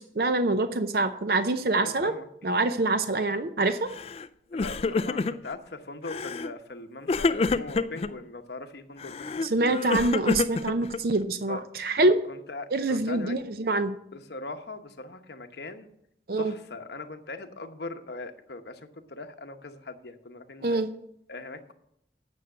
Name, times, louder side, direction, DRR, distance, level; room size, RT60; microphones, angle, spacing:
voice 1, 0.0-2.1 2.4-3.9 9.4-12.2 12.7-14.0 16.3-16.5 20.6-20.9, right 2 dB, 55° right, 10 dB, 0.6 m, -25 dB
voice 2, 1.8-2.3 4.5-9.5 11.5-11.6 12.0-13.4 14.1-15.9 16.4-20.8 21.3-21.7, left 3 dB, 70° left, 6 dB, 1.0 m, -40 dB
Crying sobbing, 3.9-4.3 4.5-5.6 6.1-6.5 7.1-8.1 9.0-11.2, left 3 dB, 35° left, 0.3 m, -28 dB
9.5 x 6.4 x 7.5 m, 0.74 s
head